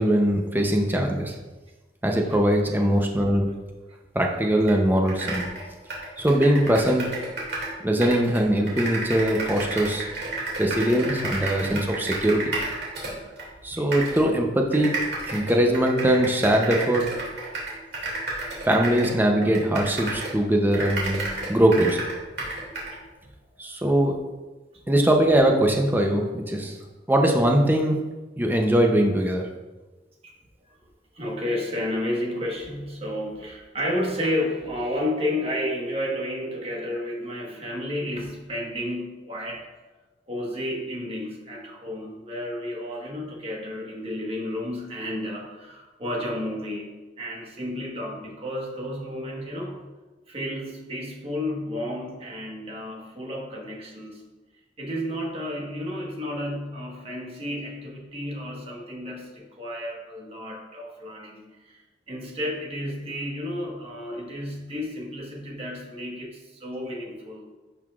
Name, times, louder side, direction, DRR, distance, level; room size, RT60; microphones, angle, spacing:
voice 1, 0.0-1.3 2.0-3.5 4.1-5.4 6.2-7.1 7.8-10.1 10.6-12.6 13.6-15.0 15.3-17.1 18.6-21.2 21.5-22.0 23.6-24.1 24.9-26.8 27.1-28.0 28.4-29.5, right 1 dB, 10° right, 2 dB, 0.6 m, -21 dB
sound 1, 4.7-4.8 5.1-7.7 8.0-13.5 13.9-14.2 14.7-20.4 20.7-22.9, right 2 dB, 60° right, 2.3 m, -31 dB
voice 2, 31.1-39.6 40.3-49.8 50.3-54.2 54.8-61.8 62.1-67.5, left 1 dB, 35° right, -1 dB, 1.4 m, -32 dB
10.5 x 5.6 x 2.4 m, 1.2 s
head